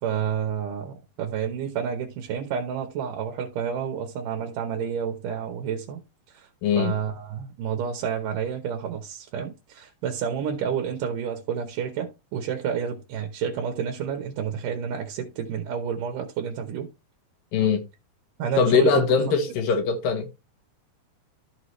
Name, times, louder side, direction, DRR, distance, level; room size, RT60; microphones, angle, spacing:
voice 1, 0.0-6.0 6.3-6.5 6.8-16.9 18.4-19.2, right 7 dB, 70° right, 2.5 m, -30 dB
voice 2, 6.6-6.9 17.5-17.8 18.6-20.3, left 6 dB, 75° left, 3.0 m, -21 dB
14.0 x 4.7 x 3.1 m
omnidirectional pair, 4.1 m